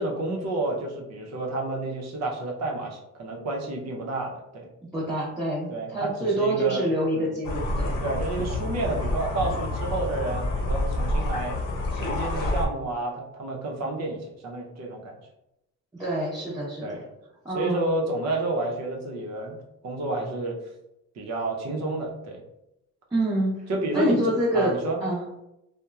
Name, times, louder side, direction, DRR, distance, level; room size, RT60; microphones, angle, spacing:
voice 1, 0.0-4.7 5.7-7.3 8.0-11.6 11.9-15.2 16.8-17.0 17.5-19.6 19.8-20.6 21.2-22.4 23.7-24.2 24.5-25.0, right 2 dB, 60° right, 1 dB, 0.7 m, -30 dB
voice 2, 4.9-8.0 15.9-17.0 17.4-17.9 23.1-23.7 23.9-25.2, right 1 dB, 10° right, -10 dB, 0.8 m, -26 dB
sound 1, 7.4-12.7, left 2 dB, 80° left, 0.7 m, -28 dB
2.8 x 2.1 x 2.3 m, 0.87 s
cardioid pair, 90°, 30 cm